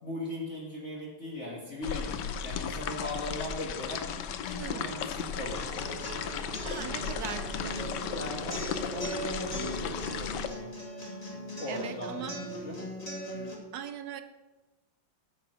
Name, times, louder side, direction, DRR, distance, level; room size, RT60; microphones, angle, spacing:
voice 1, 0.0-4.0 4.4-5.6 6.9-7.0 8.1-10.7 11.6-12.8, left 1 dB, 40° left, -4 dB, 1.9 m, -39 dB
sound 1, 1.8-10.5, left 7 dB, 75° left, 1.2 m, -35 dB
voice 2, 4.5-4.9 6.6-7.8 8.7-8.9 11.7-12.4 13.7-14.2, right 9 dB, 75° right, 10 dB, 0.9 m, -40 dB
sound 2, 5.2-10.3, right 5 dB, 55° right, 1.6 m, -47 dB
sound 3, 5.6-13.5, equal, 20° left, 1.7 m, -39 dB
9.5 x 6.9 x 6.1 m, 1.2 s
omnidirectional pair, 2.1 m